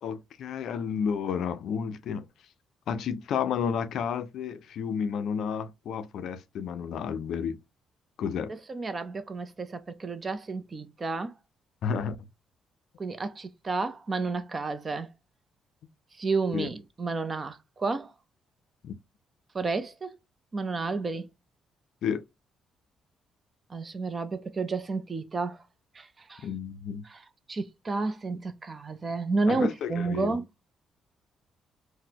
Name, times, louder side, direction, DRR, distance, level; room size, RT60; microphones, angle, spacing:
voice 1, 0.0-2.3 2.9-7.6 8.2-8.5 11.8-12.2 16.5-16.7 18.8-18.9 22.0-22.2 26.4-27.0 29.5-30.4, left 7 dB, 75° left, 0.4 m, -31 dB
voice 2, 8.7-11.3 13.0-15.1 16.2-18.1 19.5-20.2 20.5-21.3 23.7-25.6 25.9-26.5 27.0-27.2 27.5-30.5, right 3 dB, 35° right, 0.5 m, -31 dB
4.0 x 2.1 x 2.7 m
cardioid pair, 90°, 0 cm